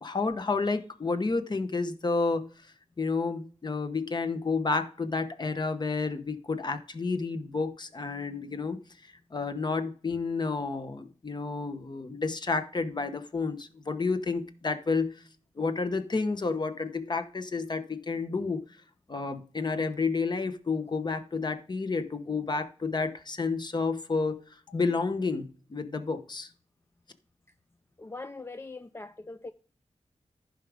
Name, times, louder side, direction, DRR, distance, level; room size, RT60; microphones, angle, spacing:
voice 1, 0.0-2.5 3.0-8.8 9.3-15.2 15.6-18.6 19.1-24.4 24.7-26.5, left 4 dB, 35° left, 0.9 m, -30 dB
voice 2, 28.0-29.5, left 3 dB, 20° left, 0.3 m, -41 dB
14.5 x 4.9 x 3.5 m
wide cardioid pair, 130°, 12 cm